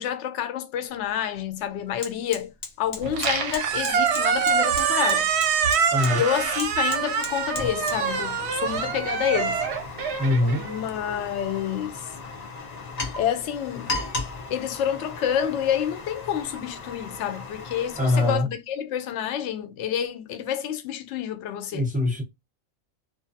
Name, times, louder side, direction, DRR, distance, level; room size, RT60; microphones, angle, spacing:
voice 1, 0.0-2.5 2.8-5.3 6.1-9.6 10.6-12.1 13.1-13.9 14.5-21.9, left 9 dB, 70° left, 0.8 m, -28 dB
Fire, 0.9-1.0 1.4-18.4, left 3 dB, 50° left, 0.5 m, -37 dB
Squeak, 3.0-11.3, right 6 dB, 65° right, 0.7 m, -25 dB
voice 2, 10.2-10.6 18.0-18.5 21.7-22.2, left 2 dB, 10° right, 0.5 m, -22 dB
2.5 x 2.2 x 2.6 m
omnidirectional pair, 1.4 m